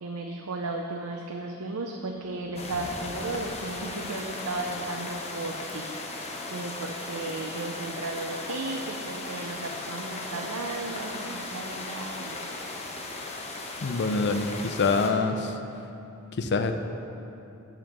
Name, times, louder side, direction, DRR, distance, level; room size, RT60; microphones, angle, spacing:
voice 1, 0.0-5.9 6.5-12.7, right 2 dB, 80° right, 2 dB, 0.6 m, -35 dB
Thunder, 2.2-4.7, left 1 dB, 90° left, 1.1 m, -46 dB
sound 1, 2.6-15.1, left 2 dB, 30° left, 0.9 m, -37 dB
voice 2, 13.8-15.5 16.4-16.7, left 4 dB, 50° left, 7 dB, 0.6 m, -25 dB
7.7 x 7.6 x 5.3 m, 3.0 s
head